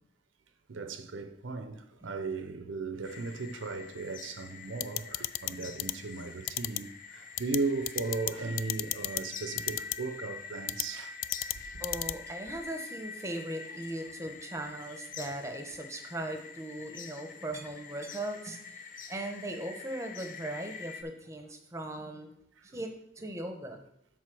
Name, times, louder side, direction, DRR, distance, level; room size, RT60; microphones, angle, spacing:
voice 1, 0.7-11.2 11.5-11.8 22.6-22.8, right 3 dB, 75° right, 0.6 m, -36 dB
sound 1, 3.0-21.0, left 5 dB, 45° left, 0.6 m, -46 dB
sound 2, 4.8-5.5 5.8-5.9 6.5-6.8 7.4-7.6 7.9-8.3 8.6-9.2 9.6-10.0 10.7-10.8 11.2-11.5 11.8-12.1, left 16 dB, 85° left, 0.3 m, -31 dB
voice 2, 11.8-22.3 22.6-22.9 23.2-23.8, right 1 dB, 15° right, 0.9 m, -39 dB
7.5 x 4.1 x 6.1 m
head